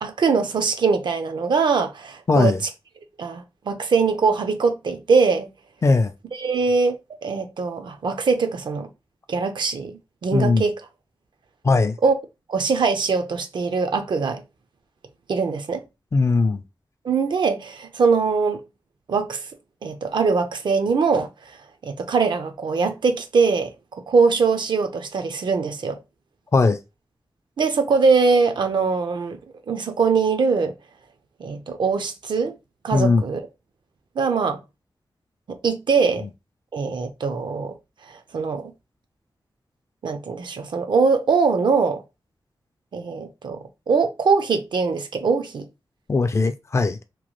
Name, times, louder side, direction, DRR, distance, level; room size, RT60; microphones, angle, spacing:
voice 1, 0.0-2.6 3.2-5.5 6.3-8.9 9.3-10.8 12.0-12.1 12.5-14.4 15.3-15.8 17.0-18.6 19.1-19.4 19.8-21.6 21.8-23.7 24.1-26.0 27.6-29.4 29.7-30.7 31.4-32.6 32.8-33.4 34.2-34.6 35.5-36.3 36.7-37.8 38.1-38.7 40.0-42.0 42.9-45.7, right 4 dB, 65° right, 0.5 m, -22 dB
voice 2, 2.3-2.6 5.8-6.1 10.3-10.6 11.6-12.0 16.1-16.6 26.5-26.8 32.9-33.2 46.1-47.0, left 3 dB, 35° left, 0.3 m, -19 dB
3.0 x 2.2 x 3.0 m
wide cardioid pair, 130°, 8 cm